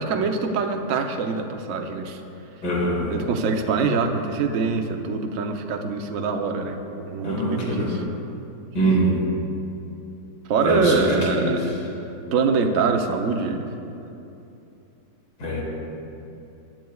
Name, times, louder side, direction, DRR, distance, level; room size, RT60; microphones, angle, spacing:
voice 1, 0.0-2.2 3.1-8.0 10.5-11.7 12.3-13.7, right 4 dB, 55° right, 4 dB, 1.0 m, -24 dB
voice 2, 2.6-3.1 7.2-8.0 8.7-9.2 10.6-11.7 15.4-15.6, right 1 dB, 60° left, -4 dB, 2.8 m, -23 dB
18.5 x 10.5 x 2.3 m, 2.8 s
omnidirectional pair, 1.9 m